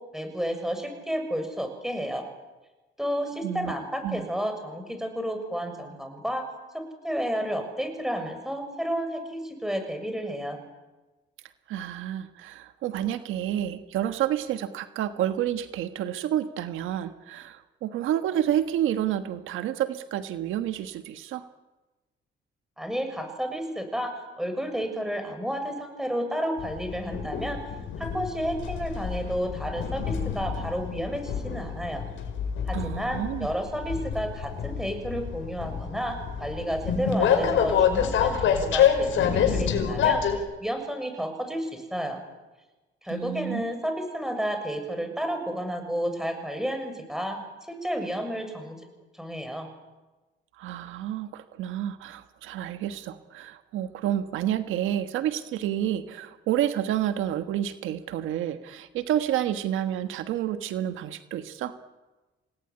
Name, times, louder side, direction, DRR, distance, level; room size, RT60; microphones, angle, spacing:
voice 1, 0.1-2.2 3.0-6.5 6.7-10.6 22.8-27.6 28.0-32.1 32.7-42.2 43.0-47.4 47.7-48.8 49.1-49.7, equal, ahead, 6 dB, 6.8 m, -31 dB
voice 2, 3.4-3.7 4.0-4.3 11.7-21.4 32.7-33.5 43.1-43.7 50.6-61.7, right 11 dB, 90° right, 9 dB, 1.5 m, -29 dB
Train, 26.6-40.4, left 7 dB, 75° left, 5.2 m, -27 dB
28.0 x 19.0 x 9.8 m, 1.1 s
cardioid pair, 90°, 20 cm